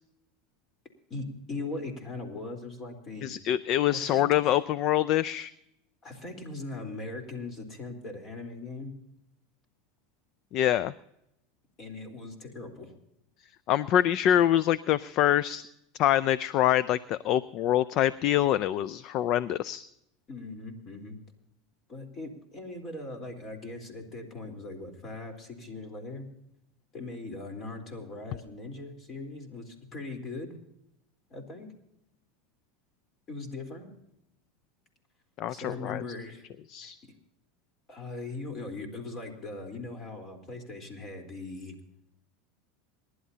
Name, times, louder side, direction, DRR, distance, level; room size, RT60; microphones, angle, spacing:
voice 1, 1.1-3.3 3.9-4.6 6.0-8.9 11.8-12.9 20.3-21.2 21.9-26.3 26.9-30.6 31.3-31.7 33.3-33.9 35.5-36.5 36.8-36.9 37.9-41.7, left 2 dB, 35° left, 5 dB, 3.7 m, -40 dB
voice 2, 3.2-5.5 10.5-10.9 13.7-15.7 16.0-19.8 35.4-36.0 36.7-37.0, left 11 dB, 50° left, 19 dB, 0.4 m, -25 dB
27.5 x 11.5 x 2.8 m, 0.80 s
hypercardioid pair, 105°, 0 cm